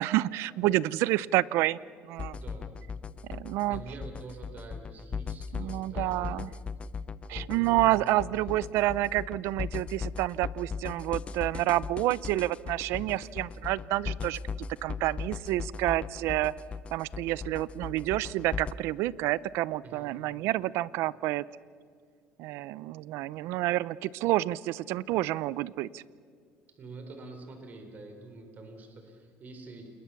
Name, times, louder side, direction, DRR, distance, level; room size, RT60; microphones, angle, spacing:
voice 1, 0.0-1.8 2.1-2.4 3.3-3.8 5.5-6.5 7.3-14.4 14.8-16.5 16.9-21.4 22.4-26.0, right 16 dB, 75° right, 21 dB, 0.6 m, -29 dB
sound 1, 2.2-18.7, left 5 dB, 25° left, 0.7 m, -38 dB
voice 2, 2.3-2.8 3.7-6.4 7.3-7.9 8.3-8.5 12.9-13.2 19.8-20.1 26.7-29.9, right 3 dB, 40° right, 5 dB, 4.1 m, -46 dB
29.0 x 21.0 x 7.1 m, 2.2 s
cardioid pair, 130°, 4 cm